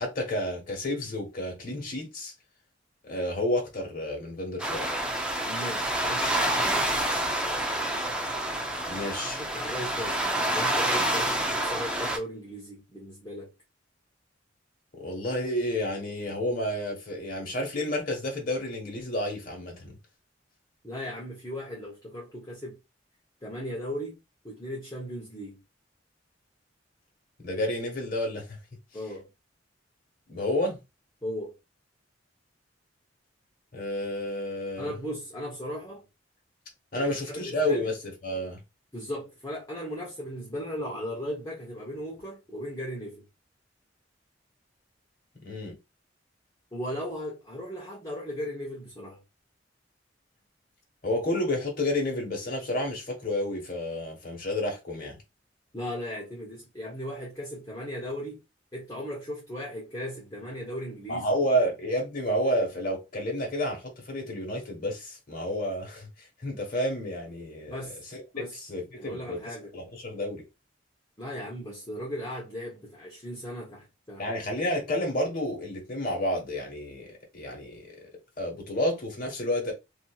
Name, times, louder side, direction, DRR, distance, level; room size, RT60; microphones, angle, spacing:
voice 1, 0.0-2.3 3.0-4.9 8.9-9.4 14.9-20.0 27.4-28.6 30.3-30.8 33.7-34.9 36.9-38.6 45.4-45.8 51.0-55.2 61.1-70.4 74.2-78.1 78.4-79.7, left 1 dB, 50° left, 1.2 m, -30 dB
sound 1, 4.6-12.2, right 1 dB, 5° right, 0.4 m, -28 dB
voice 2, 5.4-7.5 9.1-13.5 20.8-22.8 23.4-24.2 24.4-25.6 28.9-29.3 31.2-31.6 34.8-36.0 36.9-37.9 38.9-43.2 46.7-49.2 55.7-58.4 58.7-61.4 67.7-68.0 68.3-68.5 68.9-69.7 71.2-74.4, equal, 20° left, 0.8 m, -37 dB
2.8 x 2.7 x 2.3 m
head